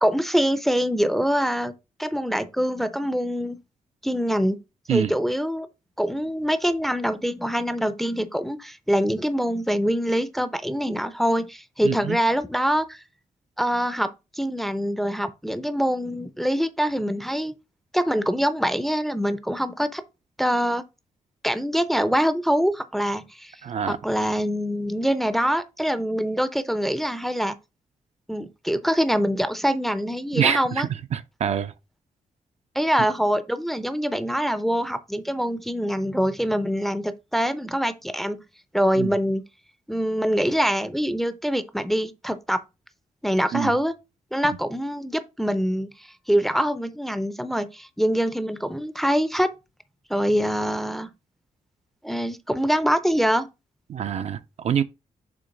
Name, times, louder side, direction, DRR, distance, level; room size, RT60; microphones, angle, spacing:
voice 1, 0.0-1.7 2.0-3.6 4.0-4.6 4.9-5.7 6.0-13.0 13.6-17.5 17.9-20.0 20.4-20.8 21.4-23.5 23.9-27.6 28.3-30.9 32.8-38.4 38.7-39.4 39.9-42.6 43.2-43.9 44.3-45.9 46.3-49.5 50.1-51.1 52.0-53.5, equal, ahead, 0.5 m, -24 dB
voice 2, 11.8-12.2 23.6-24.0 30.3-31.7 39.0-39.1 43.5-43.7 53.9-54.8, right 8 dB, 50° right, 0.5 m, -25 dB
7.0 x 2.9 x 5.2 m
wide cardioid pair, 150°, 14 cm